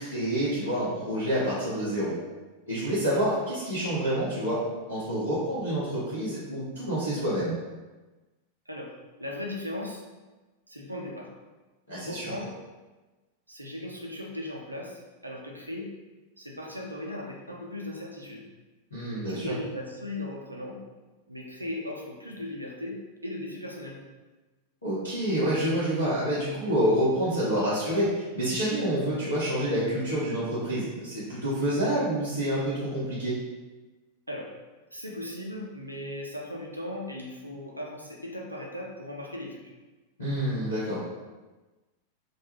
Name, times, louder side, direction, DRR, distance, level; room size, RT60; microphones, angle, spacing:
voice 1, 0.0-2.1 2.7-7.5 11.9-12.2 18.9-19.5 24.8-33.4 40.2-41.0, equal, 80° left, -11 dB, 0.7 m, -28 dB
voice 2, 9.2-10.0 10.7-11.3 12.0-12.6 13.5-15.9 16.4-18.4 19.3-20.8 21.3-24.0 34.3-34.5 34.9-39.6, left 1 dB, 85° right, 0 dB, 0.4 m, -37 dB
2.3 x 2.2 x 3.1 m, 1.2 s
figure-of-eight pair, 90°, 0 cm